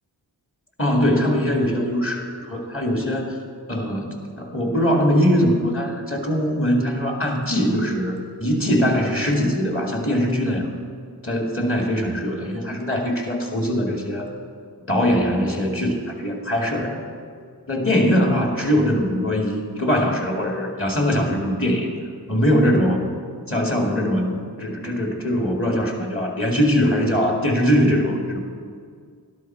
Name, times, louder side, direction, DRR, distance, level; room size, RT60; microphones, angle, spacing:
voice 1, 0.8-3.4 3.7-10.7 11.2-14.3 14.9-17.0 17.7-21.9 22.3-23.1 23.5-28.4, equal, 30° left, 1 dB, 2.2 m, -21 dB
12.0 x 12.0 x 4.5 m, 2.1 s
wide cardioid pair, 80°, 40 cm